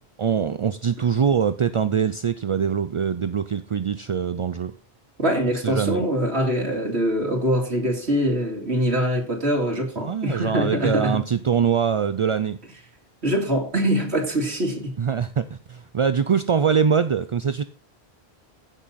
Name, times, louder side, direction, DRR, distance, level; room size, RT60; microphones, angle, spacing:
voice 1, 0.2-4.7 5.6-6.0 10.0-12.6 15.0-17.6, right 7 dB, 50° right, 0.4 m, -23 dB
voice 2, 5.2-11.2 13.2-15.0, equal, 90° right, 2.8 m, -23 dB
15.5 x 6.1 x 4.1 m
omnidirectional pair, 1.1 m